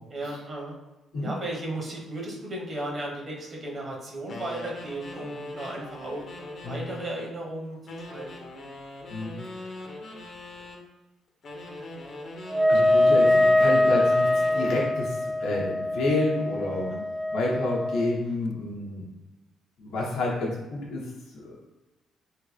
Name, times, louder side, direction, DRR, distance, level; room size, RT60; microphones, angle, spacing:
voice 1, 0.1-0.8 1.2-6.2 6.6-7.8 8.1-8.4 15.4-15.7 16.7-17.0, right 1 dB, 40° right, -2 dB, 1.2 m, -35 dB
sound 1, 4.3-7.4 7.9-10.8 11.4-15.0, left 1 dB, 55° left, 0.8 m, -41 dB
Wind instrument woodwind instrument, 12.5-18.2, left 1 dB, 10° right, 0.3 m, -23 dB
voice 2, 12.7-16.9 17.3-19.0 19.8-21.0 21.4-21.6, left 2 dB, 85° left, -3 dB, 1.1 m, -29 dB
3.4 x 2.8 x 3.3 m, 1.1 s
cardioid pair, 90°, 0 cm